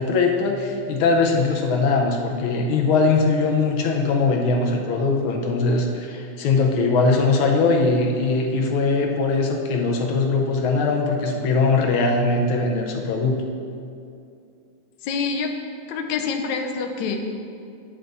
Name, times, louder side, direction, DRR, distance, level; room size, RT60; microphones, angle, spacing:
voice 1, 0.0-13.4, left 3 dB, 90° left, 1 dB, 1.6 m, -21 dB
voice 2, 15.0-15.5 15.8-17.2, left 5 dB, 75° left, 4 dB, 1.2 m, -26 dB
9.8 x 3.3 x 3.9 m, 2.5 s
omnidirectional pair, 2.3 m